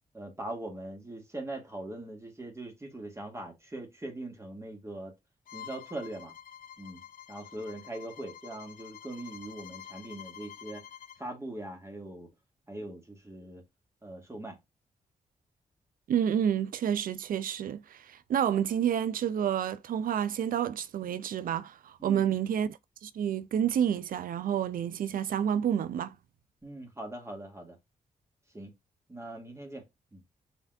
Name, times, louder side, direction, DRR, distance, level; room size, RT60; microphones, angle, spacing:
voice 1, 0.1-5.1 5.5-6.3 6.8-7.0 7.3-10.9 11.2-12.3 12.7-13.6 14.0-14.6 22.0-22.3 26.6-27.8 28.5-28.8 29.1-29.9 30.1-30.2, right 1 dB, 20° right, 1.9 m, -41 dB
Bowed string instrument, 5.5-11.2, left 9 dB, 75° left, 0.6 m, -48 dB
voice 2, 16.1-26.2, right 9 dB, 70° right, 0.4 m, -29 dB
5.9 x 3.4 x 2.6 m
cardioid pair, 70°, 15 cm